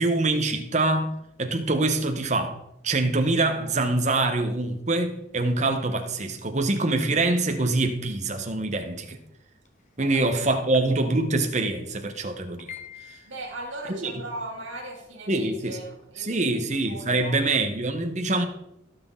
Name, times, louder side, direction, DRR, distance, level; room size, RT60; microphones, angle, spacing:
voice 1, 0.0-2.6 2.8-9.2 10.0-12.7 13.1-13.2 13.9-14.1 15.3-15.7 16.2-18.4, right 2 dB, 35° right, 1.2 m, -25 dB
sound 1, 9.5-9.9 10.7-10.8 11.1-11.2 11.6-11.7 12.4-13.7, left 8 dB, 40° left, 1.4 m, -43 dB
voice 2, 13.3-17.4, right 2 dB, 75° right, 3.2 m, -38 dB
16.0 x 6.3 x 3.9 m
head